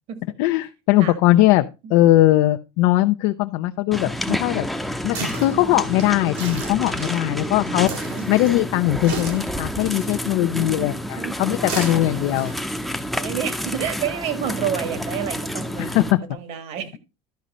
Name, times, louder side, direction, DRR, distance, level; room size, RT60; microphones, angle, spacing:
voice 1, 0.4-4.7 5.0-7.9 8.3-12.5 15.8-16.2, left 16 dB, 75° left, 0.6 m, -20 dB
sound 1, 3.9-16.1, equal, ahead, 0.7 m, -29 dB
sound 2, 4.7-14.5, right 3 dB, 85° right, 4.2 m, -37 dB
voice 2, 7.6-8.3 10.5-12.4 13.2-17.0, right 8 dB, 55° right, 1.7 m, -30 dB
11.5 x 5.1 x 4.2 m
cardioid pair, 135°, 13 cm